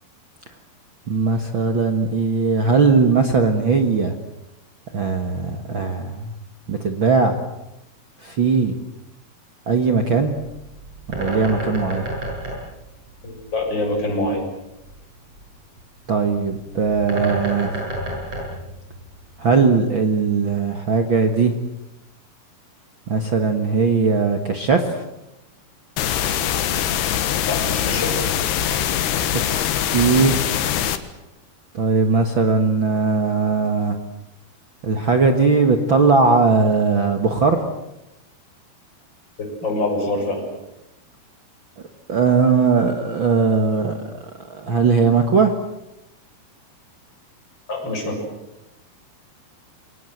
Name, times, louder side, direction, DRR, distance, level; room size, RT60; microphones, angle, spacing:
voice 1, 1.1-4.1 4.9-6.3 6.7-7.4 8.2-8.8 9.7-10.4 11.1-12.1 16.1-17.7 19.4-21.5 23.1-25.0 29.3-29.4 29.9-30.4 31.7-34.0 34.8-37.6 42.1-44.0 44.5-45.5, right 4 dB, 55° right, 6 dB, 1.4 m, -19 dB
Bird, 10.3-19.4, equal, 40° right, 9.2 m, -32 dB
voice 2, 13.2-14.4 27.5-28.1 39.6-40.4 47.7-48.2, left 2 dB, 25° left, 1 dB, 7.7 m, -24 dB
sound 1, 26.0-31.0, left 10 dB, 85° left, 3.5 m, -22 dB
28.0 x 23.5 x 8.0 m, 0.93 s
omnidirectional pair, 4.6 m